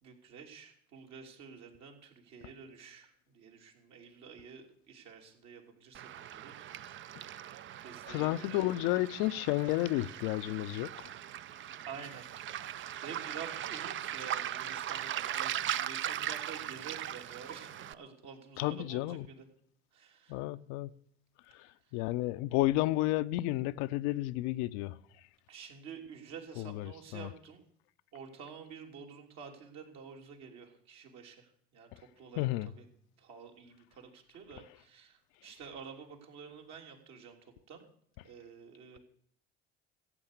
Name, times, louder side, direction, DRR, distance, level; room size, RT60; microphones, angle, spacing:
voice 1, 0.0-6.5 7.8-8.8 11.8-12.3 12.6-19.5 19.9-20.4 21.5-21.6 25.5-27.6 28.1-32.5 32.8-32.9 33.2-37.4 37.7-37.9 38.2-39.0, right 6 dB, 60° right, 3.2 m, -49 dB
Waves surf, 5.9-17.9, right 11 dB, 40° right, 0.6 m, -39 dB
voice 2, 8.1-11.1 18.6-19.3 20.3-20.9 21.9-25.0 26.6-27.3 32.4-32.7, left 17 dB, 65° left, 0.6 m, -31 dB
14.5 x 8.4 x 6.7 m
hypercardioid pair, 65°, 30 cm